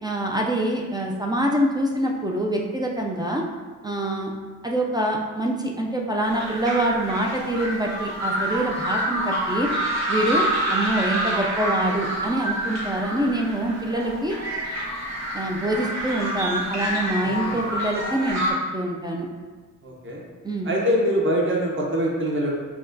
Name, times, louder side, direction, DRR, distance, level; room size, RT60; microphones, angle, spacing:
voice 1, 0.0-3.4 3.8-4.3 4.6-9.7 10.1-14.3 15.3-18.4 18.7-19.3 20.4-20.7, right 1 dB, 15° right, -1 dB, 0.3 m, -25 dB
sound 1, 6.2-18.5, right 1 dB, 50° right, 1.1 m, -27 dB
voice 2, 17.2-17.6 19.8-20.2 20.6-22.5, equal, 35° right, -3 dB, 0.8 m, -24 dB
5.7 x 2.1 x 2.6 m, 1.4 s
wide cardioid pair, 115°, 33 cm